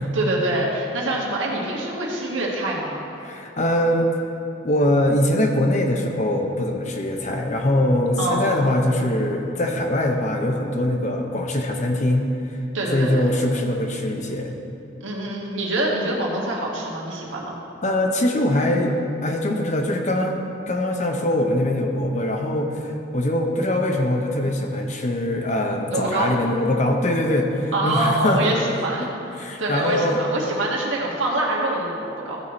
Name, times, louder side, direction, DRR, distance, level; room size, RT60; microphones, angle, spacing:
voice 1, 0.1-3.0 8.2-8.5 12.7-13.3 15.0-17.6 25.9-26.4 27.7-29.1 29.6-32.4, right 2 dB, 70° right, -3 dB, 1.5 m, -25 dB
voice 2, 3.2-4.1 4.6-12.3 12.9-14.5 17.8-19.0 19.2-28.5 29.4-30.2, left 1 dB, 35° left, 2 dB, 0.7 m, -22 dB
14.0 x 4.8 x 4.2 m, 2.7 s
head